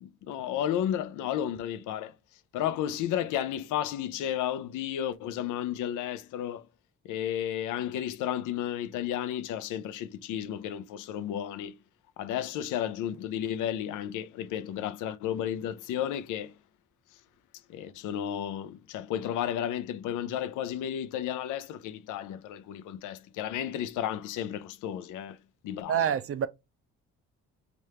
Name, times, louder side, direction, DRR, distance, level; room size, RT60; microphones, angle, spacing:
voice 1, 0.0-2.1 2.5-6.7 7.0-11.8 12.2-16.5 17.7-25.4 25.6-26.1, left 10 dB, 90° left, 0.5 m, -33 dB
voice 2, 25.9-26.5, right 9 dB, 50° right, 0.5 m, -26 dB
3.3 x 2.5 x 4.3 m
cardioid pair, 90°, 30 cm